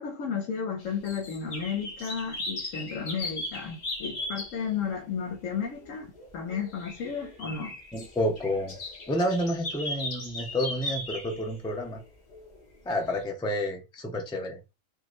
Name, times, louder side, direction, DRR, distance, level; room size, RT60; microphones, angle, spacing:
voice 1, 0.0-7.8, left 6 dB, 85° left, 1.1 m, -33 dB
sound 1, 0.8-4.9 5.6-12.6 13.2-13.3, left 2 dB, 40° left, 0.9 m, -38 dB
voice 2, 7.9-8.7 9.1-12.0 12.8-14.6, equal, 5° left, 0.3 m, -29 dB
3.7 x 2.6 x 3.1 m
omnidirectional pair, 1.3 m